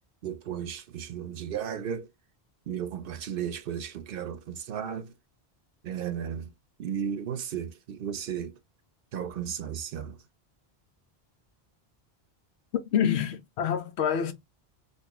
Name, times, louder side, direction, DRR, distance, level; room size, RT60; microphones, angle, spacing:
voice 1, 0.2-2.1 2.7-5.1 5.8-6.5 6.8-8.5 9.1-10.2, right 8 dB, 65° right, 0.7 m, -34 dB
voice 2, 12.9-14.3, left 8 dB, 85° left, 0.9 m, -26 dB
3.5 x 2.7 x 2.9 m
omnidirectional pair, 1.1 m